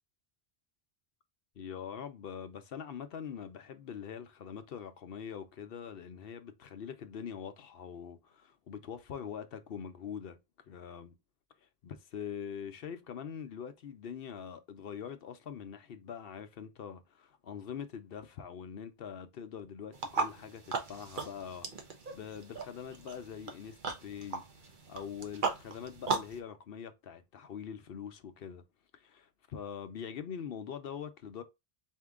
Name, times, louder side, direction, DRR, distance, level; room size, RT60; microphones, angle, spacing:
voice 1, 1.6-10.4 10.7-11.1 11.8-21.9 22.1-24.5 24.9-28.6 28.9-31.4, left 7 dB, 65° left, 0.8 m, -43 dB
sound 1, 19.9-26.4, right 4 dB, 55° right, 1.0 m, -38 dB
4.4 x 2.7 x 3.6 m
omnidirectional pair, 1.1 m